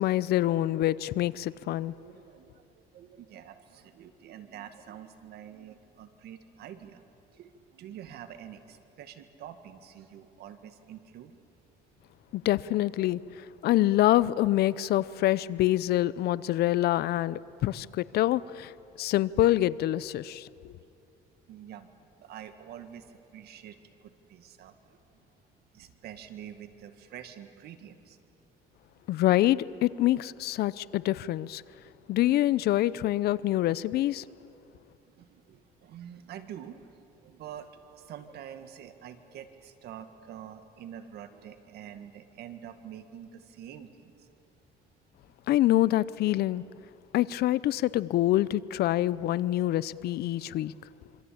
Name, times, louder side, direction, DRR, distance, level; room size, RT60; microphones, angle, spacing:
voice 1, 0.0-1.9 12.3-13.2 13.6-18.7 19.0-20.5 29.1-31.6 32.1-34.2 45.5-46.6 47.1-50.7, left 14 dB, 70° left, 0.7 m, -26 dB
voice 2, 2.0-7.0 7.3-11.4 21.5-21.9 22.2-24.8 25.7-28.2 35.2-44.3 50.5-50.6, right 9 dB, 70° right, 2.0 m, -46 dB
26.5 x 25.0 x 8.7 m
cardioid pair, 110°, 17 cm